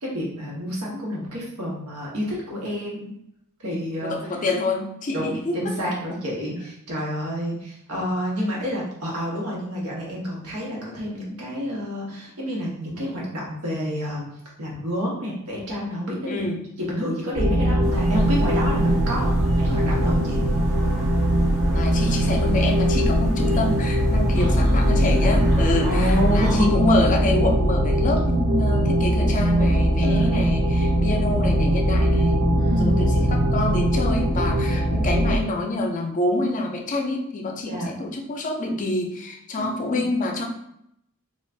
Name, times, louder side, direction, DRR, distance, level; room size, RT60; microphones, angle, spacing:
voice 1, 0.0-3.1 3.6-4.2 5.1-14.3 14.6-16.4 16.8-20.4 24.3-25.1 25.8-26.7 30.0-30.5 32.5-33.0 37.6-38.0 39.5-40.0, equal, 85° right, -4 dB, 1.0 m, -29 dB
voice 2, 4.0-5.7 6.1-6.3 16.3-16.6 21.7-32.5 32.8-40.4, left 2 dB, 35° left, 2 dB, 0.4 m, -26 dB
sound 1, 17.3-35.4, right 1 dB, 65° right, 0.5 m, -21 dB
sound 2, 17.8-26.6, equal, 15° right, 0.8 m, -29 dB
3.3 x 2.4 x 2.4 m, 0.76 s
head